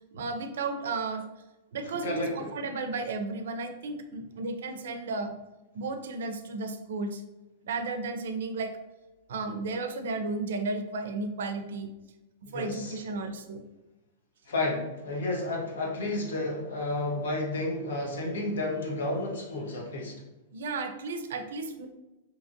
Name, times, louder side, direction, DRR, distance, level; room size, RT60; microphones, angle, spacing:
voice 1, 0.1-1.3 1.7-5.3 5.7-7.2 7.6-8.7 9.3-11.9 12.5-13.6 20.5-21.9, right 3 dB, 80° right, 7 dB, 0.4 m, -33 dB
voice 2, 1.8-2.5 12.5-13.0 14.4-20.2, left 2 dB, 85° left, -1 dB, 0.8 m, -31 dB
2.8 x 2.5 x 2.5 m, 1.1 s
supercardioid pair, 155°, 0 cm